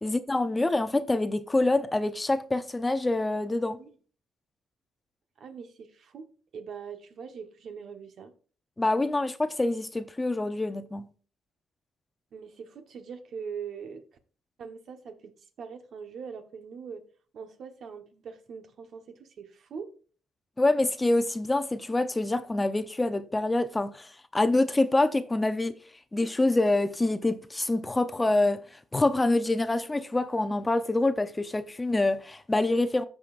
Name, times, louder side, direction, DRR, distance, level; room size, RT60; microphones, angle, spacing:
voice 1, 0.0-3.8 8.8-11.1 20.6-25.7 26.1-33.0, left 2 dB, 15° left, 0.6 m, -26 dB
voice 2, 5.4-8.3 12.3-14.0 14.6-15.3 15.6-17.0 17.3-19.9, right 6 dB, 65° right, 1.2 m, -42 dB
14.5 x 5.1 x 2.5 m
cardioid pair, 90°, 0 cm